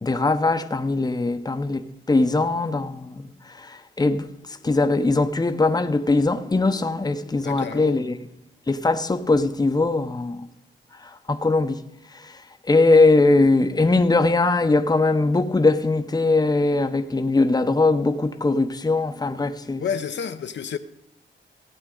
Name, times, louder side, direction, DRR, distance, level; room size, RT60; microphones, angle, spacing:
voice 1, 0.0-8.1 8.7-10.5 11.0-11.8 12.1-12.4 12.7-19.8, left 3 dB, 20° left, 0.7 m, -21 dB
voice 2, 7.4-8.0 19.8-20.8, left 7 dB, 65° left, 0.7 m, -30 dB
15.5 x 8.7 x 3.8 m
cardioid pair, 80°, 20 cm